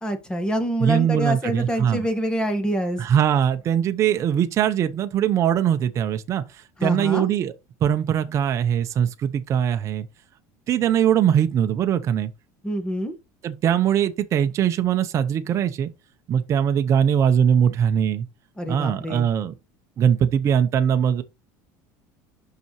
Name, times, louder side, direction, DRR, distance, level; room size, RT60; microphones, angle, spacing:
voice 1, 0.0-3.0 6.8-7.3 12.6-13.1 18.6-19.3, equal, 10° left, 1.5 m, -26 dB
voice 2, 0.8-2.1 3.0-6.4 6.8-7.5 7.8-10.1 10.7-12.3 13.4-15.9 16.3-18.2 18.7-19.5 20.0-21.2, right 9 dB, 40° right, 0.6 m, -21 dB
6.8 x 5.8 x 3.0 m
cardioid pair, 130°, 8 cm